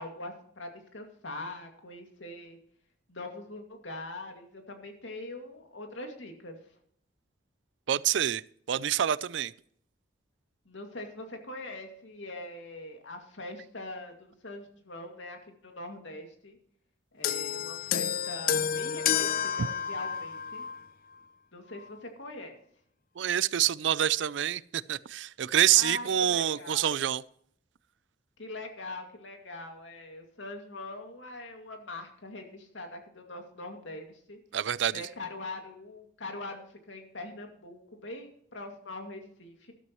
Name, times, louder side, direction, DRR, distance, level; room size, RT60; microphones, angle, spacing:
voice 1, 0.0-2.6 3.1-6.6 10.7-16.6 17.1-20.6 21.5-22.6 25.7-26.9 28.4-34.4 34.9-39.7, left 2 dB, 80° left, 2.3 m, -42 dB
voice 2, 7.9-8.4 8.7-9.5 23.2-27.2 34.5-35.1, right 10 dB, 75° right, 0.4 m, -27 dB
sound 1, 17.2-20.8 21.7-21.9, left 8 dB, 50° left, 0.4 m, -30 dB
13.0 x 12.5 x 3.1 m
head